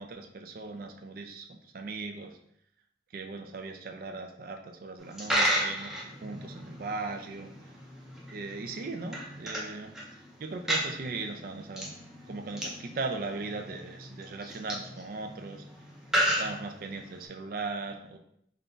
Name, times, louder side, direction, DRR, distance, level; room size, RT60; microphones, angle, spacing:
voice 1, 0.0-2.4 3.1-6.0 6.2-7.5 8.3-9.9 10.4-12.0 12.3-15.7 16.2-18.2, right 3 dB, 50° right, 4 dB, 0.4 m, -38 dB
Coin (dropping), 5.0-17.3, equal, 5° right, 0.6 m, -34 dB
3.7 x 2.2 x 3.8 m, 0.71 s
head